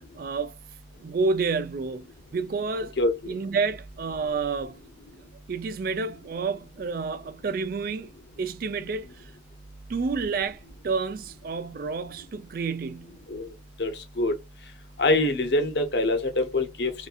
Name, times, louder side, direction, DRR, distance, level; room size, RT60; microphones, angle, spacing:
voice 1, 0.1-0.6 1.0-3.0 3.3-4.8 5.5-8.1 8.4-9.3 9.9-13.2, right 4 dB, 50° right, 0.3 m, -29 dB
voice 2, 13.8-14.3 15.0-16.9, left 2 dB, 65° left, 0.8 m, -24 dB
2.6 x 2.6 x 2.3 m
head